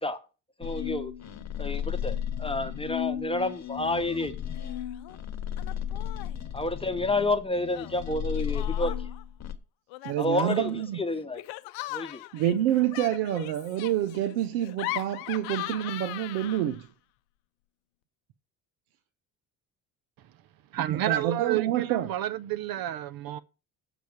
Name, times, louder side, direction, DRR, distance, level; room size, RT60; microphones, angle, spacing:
sound 1, 0.6-9.6, left 9 dB, 35° left, 1.1 m, -34 dB
voice 1, 0.6-1.1 1.6-4.3 6.5-8.9 10.2-10.7 11.0-11.4 11.9-12.2, left 2 dB, 10° left, 1.1 m, -29 dB
Laughter, 3.8-4.3 4.6-5.2 5.6-6.4 7.7-9.2 9.9-16.9, left 19 dB, 80° left, 0.7 m, -39 dB
voice 2, 10.0-11.0 12.3-16.9 21.1-22.1, right 12 dB, 80° right, 0.8 m, -27 dB
voice 3, 20.7-23.4, right 12 dB, 55° right, 0.7 m, -30 dB
7.6 x 5.1 x 7.0 m
hypercardioid pair, 65°, 44 cm